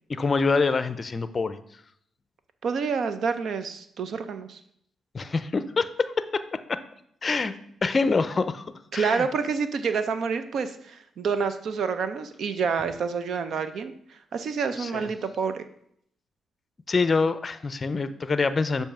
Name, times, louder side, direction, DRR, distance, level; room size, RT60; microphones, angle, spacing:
voice 1, 0.1-1.6 5.1-6.8 7.2-7.5 7.8-8.7 8.9-9.3 14.8-15.1 16.9-18.8, left 4 dB, 40° left, 12 dB, 0.5 m, -25 dB
voice 2, 2.6-4.6 8.9-15.6, right 5 dB, 70° right, 10 dB, 0.5 m, -28 dB
6.9 x 2.7 x 5.8 m, 0.70 s
cardioid pair, 70°, 0 cm